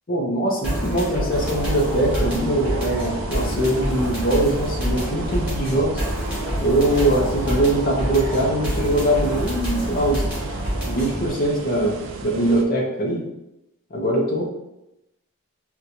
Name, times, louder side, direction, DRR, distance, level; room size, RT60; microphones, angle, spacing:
voice 1, 0.1-6.0 6.6-10.3 10.8-12.0 12.2-13.2 13.9-14.5, right 1 dB, 40° left, -2 dB, 0.6 m, -22 dB
sound 1, 0.6-11.3, equal, 5° right, 1.3 m, -27 dB
sound 2, 1.3-12.6, right 4 dB, 60° right, 0.3 m, -35 dB
sound 3, 4.5-7.9, equal, 25° right, 1.1 m, -36 dB
4.1 x 2.2 x 2.7 m, 0.91 s
head